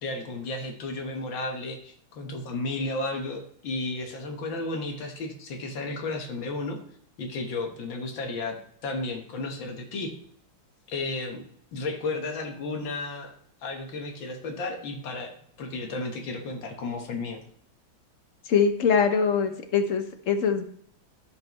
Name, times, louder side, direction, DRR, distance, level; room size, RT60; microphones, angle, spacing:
voice 1, 0.0-6.8 7.2-8.6 8.8-10.1 10.9-11.4 11.7-13.3 13.6-17.4, left 2 dB, 75° left, 3 dB, 2.0 m, -33 dB
voice 2, 18.5-20.6, left 6 dB, 50° left, 7 dB, 1.1 m, -23 dB
15.0 x 5.4 x 3.0 m, 0.63 s
omnidirectional pair, 2.1 m